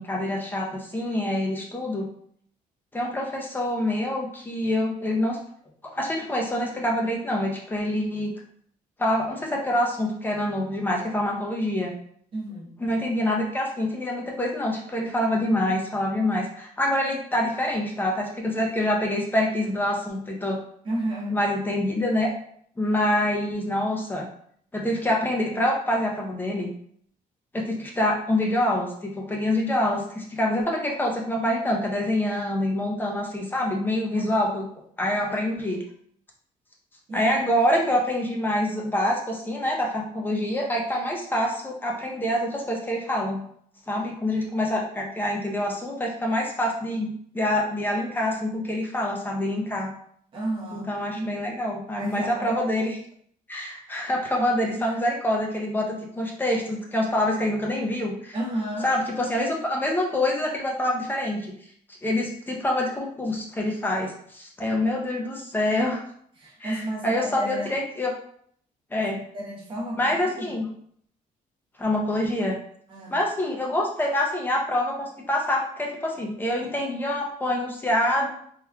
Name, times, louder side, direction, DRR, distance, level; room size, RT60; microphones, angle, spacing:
voice 1, 0.0-2.1 2.9-5.4 5.9-8.3 9.0-11.9 12.8-20.6 21.3-22.3 22.8-24.3 24.7-26.7 27.5-34.6 35.0-35.8 37.1-43.4 43.9-49.9 50.7-53.0 53.5-58.4 58.8-61.5 62.0-66.0 66.6-68.1 68.9-69.2 69.9-70.7 71.8-72.6 73.1-78.3, left 1 dB, 15° left, -1 dB, 0.6 m, -26 dB
voice 2, 12.3-12.7 20.8-21.4 34.1-34.5 35.1-35.3 37.1-37.5 50.3-51.4 52.0-52.6 54.4-55.0 58.3-58.9 66.4-67.8 69.0-69.1 69.3-70.5 72.9-73.2, right 1 dB, 35° right, -5 dB, 0.9 m, -33 dB
3.6 x 2.9 x 2.2 m, 0.63 s
cardioid pair, 155°, 15 cm